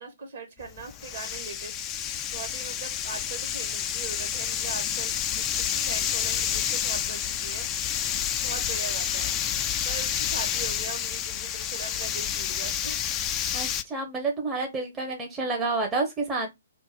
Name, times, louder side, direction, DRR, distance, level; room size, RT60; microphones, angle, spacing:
voice 1, 0.0-7.7 8.0-8.1 8.4-9.4 9.8-13.0, right 4 dB, 55° right, 1.2 m, -40 dB
sound 1, 0.6-13.8, left 9 dB, 25° left, 0.3 m, -29 dB
voice 2, 13.5-16.5, right 3 dB, 20° right, 0.7 m, -29 dB
2.4 x 2.4 x 4.0 m
figure-of-eight pair, 125°, 0 cm